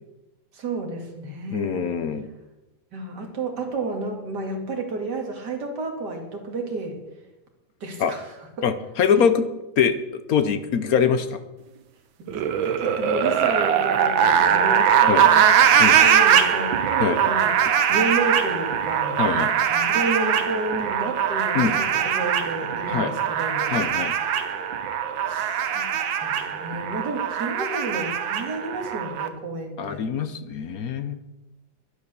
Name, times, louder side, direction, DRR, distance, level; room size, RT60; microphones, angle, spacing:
voice 1, 0.5-1.9 2.9-7.0 7.8-8.3 9.1-9.2 12.2-15.6 16.0-17.5 17.9-19.2 19.7-23.8 25.3-25.9 26.2-30.1, right 2 dB, 60° right, 2 dB, 2.8 m, -31 dB
voice 2, 1.5-2.3 8.0-8.1 8.6-9.5 9.8-11.4 15.1-15.3 15.8-16.0 17.0-17.2 19.2-19.5 21.5-21.8 22.9-23.1 23.7-24.2 29.8-31.2, left 7 dB, 60° left, 11 dB, 1.1 m, -23 dB
sound 1, 12.3-29.3, right 8 dB, 80° right, 1.7 m, -21 dB
11.0 x 11.0 x 6.8 m, 1.0 s
omnidirectional pair, 2.1 m